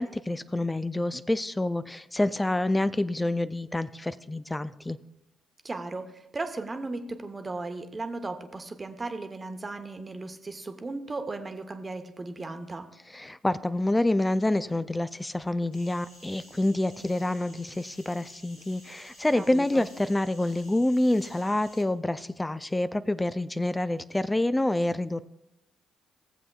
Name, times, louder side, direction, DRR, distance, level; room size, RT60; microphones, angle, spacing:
voice 1, 0.0-5.0 13.1-25.2, left 1 dB, 15° left, 14 dB, 0.4 m, -27 dB
voice 2, 5.6-12.9 19.3-19.8, right 3 dB, 30° right, 7 dB, 1.0 m, -36 dB
sound 1, 15.7-21.8, equal, 90° left, 2.6 m, -53 dB
17.0 x 7.4 x 2.3 m, 0.87 s
hypercardioid pair, 45°, 0 cm